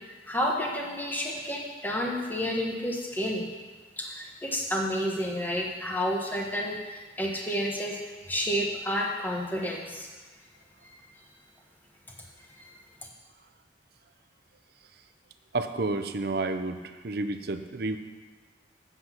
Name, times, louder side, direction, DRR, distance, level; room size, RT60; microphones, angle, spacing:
voice 1, 0.3-3.5 4.0-8.0 8.3-10.1 10.8-10.9 12.6-12.7, equal, 10° left, -1 dB, 1.2 m, -30 dB
voice 2, 15.5-18.0, right 2 dB, 60° right, 8 dB, 0.6 m, -30 dB
8.1 x 7.6 x 6.0 m, 1.4 s
head